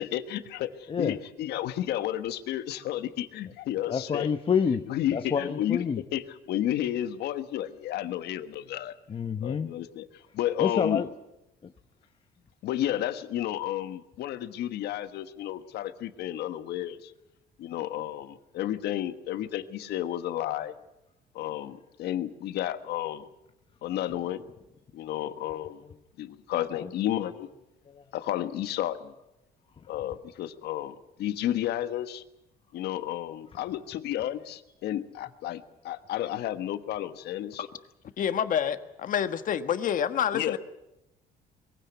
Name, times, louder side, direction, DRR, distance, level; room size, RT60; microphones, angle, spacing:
voice 1, 0.0-4.3 4.9-5.8 6.1-8.9 9.4-10.1 10.3-11.0 12.6-17.1 17.6-20.7 21.3-23.3 23.8-24.4 24.9-25.8 26.2-27.5 28.1-29.1 29.9-32.2 32.7-37.6 40.3-40.6, left 12 dB, 75° left, 1.3 m, -32 dB
voice 2, 3.9-6.0 9.1-9.7 10.6-11.1 11.6-11.7 26.7-26.9 27.9-28.0, left 6 dB, 30° left, 0.9 m, -28 dB
voice 3, 38.2-40.6, left 9 dB, 50° left, 1.4 m, -28 dB
22.0 x 16.0 x 9.4 m
cardioid pair, 110°, 17 cm